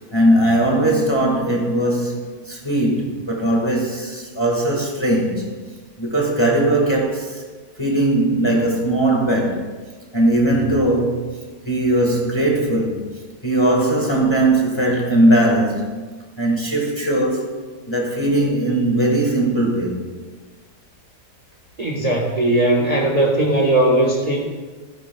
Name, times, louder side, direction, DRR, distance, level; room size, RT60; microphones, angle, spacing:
voice 1, 0.1-5.5 6.0-7.4 7.8-9.7 10.1-11.2 11.6-13.0 13.4-15.9 16.4-17.6 17.9-20.0, right 1 dB, 15° left, 1.5 m, -19 dB
voice 2, 21.8-24.4, right 1 dB, 25° right, 1.3 m, -18 dB
15.5 x 10.5 x 2.3 m
omnidirectional pair, 1.8 m